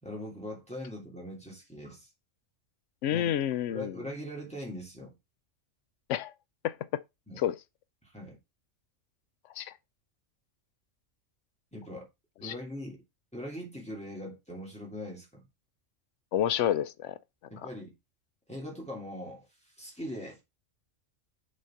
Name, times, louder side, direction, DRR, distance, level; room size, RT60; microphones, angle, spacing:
voice 1, 0.0-2.1 3.1-3.3 3.7-5.2 7.3-7.4 8.0-8.4 11.7-12.1 12.4-13.0 13.3-15.4 17.5-17.9 18.5-20.4, equal, 5° left, 2.9 m, -41 dB
voice 2, 3.0-3.9 6.1-6.3 6.6-7.0 7.4-7.6 9.6-9.7 12.4-12.5 16.3-17.2, left 11 dB, 75° left, 0.9 m, -29 dB
6.2 x 4.3 x 5.7 m
omnidirectional pair, 1.3 m